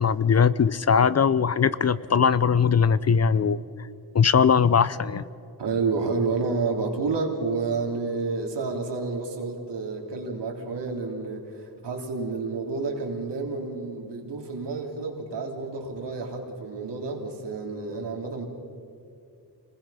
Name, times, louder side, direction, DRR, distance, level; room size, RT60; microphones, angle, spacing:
voice 1, 0.0-3.6 4.1-5.3, left 6 dB, 40° left, 17 dB, 0.6 m, -20 dB
voice 2, 5.6-18.5, right 4 dB, 85° right, 1 dB, 3.3 m, -30 dB
27.0 x 20.5 x 5.7 m, 2.5 s
wide cardioid pair, 100°, 41 cm